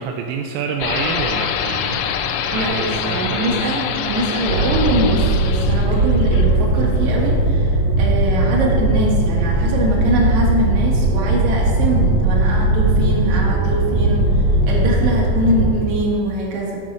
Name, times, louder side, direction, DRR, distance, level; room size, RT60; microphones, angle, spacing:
voice 1, 0.0-2.1 2.5-3.8 5.9-6.0, right 6 dB, 85° right, 2 dB, 2.3 m, -27 dB
sound 1, 0.8-7.4, left 7 dB, 85° left, 2.4 m, -25 dB
voice 2, 2.5-14.2 14.7-16.8, right 1 dB, 60° right, -2 dB, 2.7 m, -22 dB
sound 2, 4.4-15.7, right 2 dB, 40° right, 3.3 m, -18 dB
7.5 x 7.3 x 5.4 m, 2.3 s
omnidirectional pair, 4.1 m